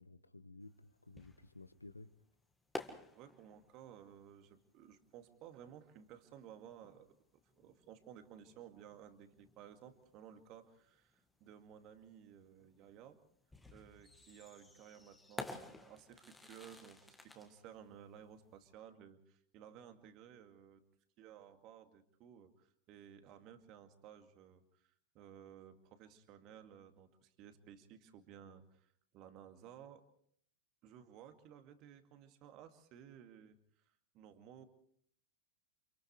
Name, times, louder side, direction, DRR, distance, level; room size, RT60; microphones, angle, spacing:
voice 1, 0.0-2.1, left 2 dB, 80° left, 14 dB, 1.1 m, -55 dB
sound 1, 0.7-18.7, left 2 dB, 5° left, 1.9 m, -53 dB
voice 2, 3.1-7.1 7.3-13.2 13.7-20.8 21.2-30.0 30.8-33.6 33.9-34.6, right 9 dB, 40° right, 7 dB, 2.2 m, -57 dB
30.0 x 27.5 x 3.3 m, 0.64 s
figure-of-eight pair, 90°, 0 cm